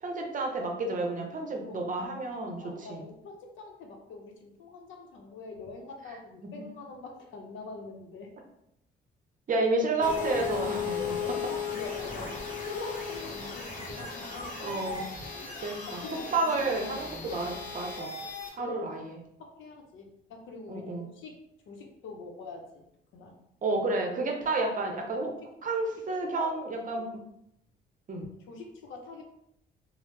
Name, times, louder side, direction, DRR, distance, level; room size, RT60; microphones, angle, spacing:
voice 1, 0.0-3.1 6.4-6.5 9.5-11.4 14.6-15.0 15.6-16.0 16.3-18.1 18.5-19.2 20.7-21.1 23.6-25.3 25.6-27.2 28.1-28.3, right 2 dB, 40° right, 2 dB, 0.7 m, -31 dB
voice 2, 1.6-8.3 11.2-11.3 11.7-15.1 15.9-16.5 17.2-17.3 18.6-18.9 19.4-22.8 23.1-23.4 25.4-25.5 26.0-26.1 26.4-26.5 27.0-27.1 28.5-29.2, left 3 dB, 75° left, 3 dB, 0.6 m, -44 dB
sound 1, 10.0-18.5, left 6 dB, 40° left, 0.9 m, -36 dB
3.1 x 2.0 x 3.1 m, 0.78 s
cardioid pair, 90°, 20 cm